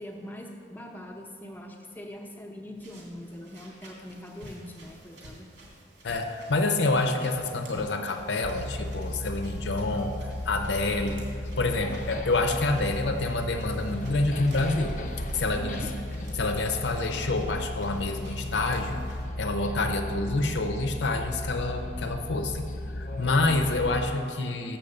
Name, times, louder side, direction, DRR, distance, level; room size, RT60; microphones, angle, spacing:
voice 1, 0.0-5.5 15.5-15.9, equal, 10° left, 1 dB, 0.8 m, -42 dB
sound 1, 2.8-19.3, right 1 dB, 90° right, 2.3 m, -50 dB
voice 2, 6.0-10.1 10.5-11.3 11.6-15.0 15.3-15.7 16.3-19.0 19.4-22.7 22.9-24.8, left 2 dB, 85° left, 4 dB, 0.7 m, -27 dB
sound 2, 8.4-24.2, left 1 dB, 45° left, 0.6 m, -35 dB
sound 3, 11.4-16.9, right 1 dB, 45° right, 0.4 m, -44 dB
7.2 x 5.8 x 6.7 m, 2.3 s
head